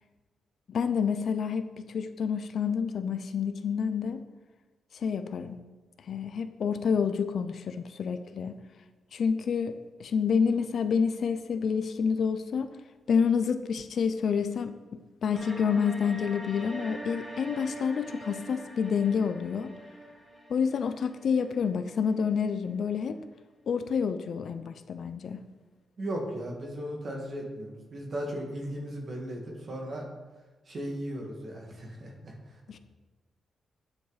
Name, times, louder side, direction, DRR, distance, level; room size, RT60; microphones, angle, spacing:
voice 1, 0.7-4.2 4.9-5.6 6.1-8.5 9.1-12.7 13.1-14.7 15.2-19.7 20.5-23.2 23.7-25.4 32.7-32.8, left 6 dB, 55° left, 10 dB, 0.5 m, -28 dB
sound 1, 15.3-22.3, right 1 dB, 15° right, 1.6 m, -43 dB
voice 2, 26.0-30.1 30.7-32.6, equal, 40° right, 0 dB, 1.8 m, -36 dB
9.3 x 8.0 x 4.1 m, 1.3 s
wide cardioid pair, 165°, 0 cm